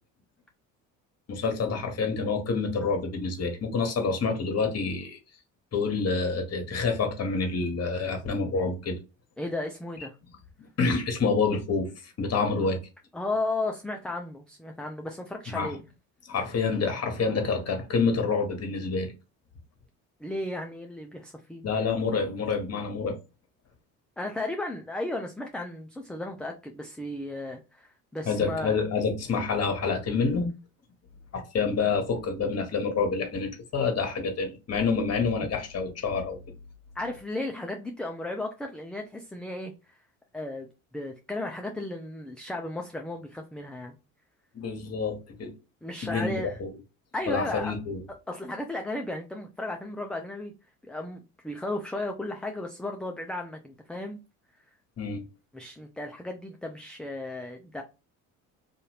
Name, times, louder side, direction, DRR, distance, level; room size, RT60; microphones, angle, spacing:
voice 1, 1.3-5.2 5.7-9.0 10.8-12.8 15.5-15.8 16.3-19.1 21.6-23.2 28.2-30.5 31.3-36.4 44.5-45.5 46.0-46.7 47.3-48.0 55.0-55.2, left 4 dB, 40° left, 1.1 m, -27 dB
voice 2, 9.4-10.2 12.6-12.7 13.1-15.8 20.2-21.7 24.2-28.7 37.0-40.0 40.3-40.7 40.9-44.0 45.8-46.6 47.1-47.8 48.3-50.5 50.9-54.2 55.5-57.8, left 2 dB, ahead, 0.3 m, -34 dB
2.6 x 2.5 x 3.1 m
hypercardioid pair, 65°, 40 cm